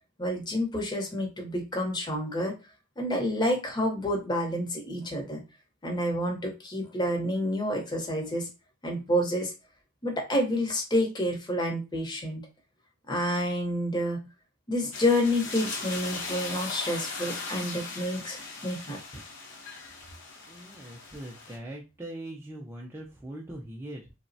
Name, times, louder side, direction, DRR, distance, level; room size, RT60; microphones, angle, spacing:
voice 1, 0.2-2.5 3.0-5.4 5.8-8.5 8.8-9.5 10.0-12.4 13.1-14.2 14.7-19.0, left 1 dB, 20° left, 0 dB, 0.7 m, -29 dB
sound 1, 14.9-21.6, left 3 dB, 55° left, 0.7 m, -38 dB
voice 2, 20.5-24.1, right 1 dB, 10° right, -2 dB, 0.3 m, -41 dB
3.2 x 2.0 x 2.6 m, 0.28 s
head